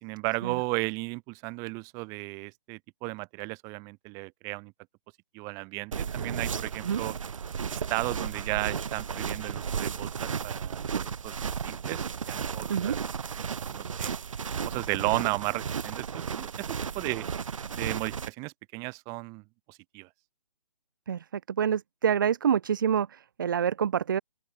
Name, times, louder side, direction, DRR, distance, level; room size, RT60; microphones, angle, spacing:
voice 1, 0.0-4.7 5.3-7.1 7.7-13.0 13.3-14.1 14.6-17.2 17.7-19.4 19.7-20.1, right 29 dB, 15° right, 1.6 m, -34 dB
sound 1, 5.9-18.3, right 7 dB, 50° right, 2.3 m, -34 dB
voice 2, 21.6-24.2, right 8 dB, 30° right, 0.5 m, -26 dB
open air
figure-of-eight pair, 155°, 21 cm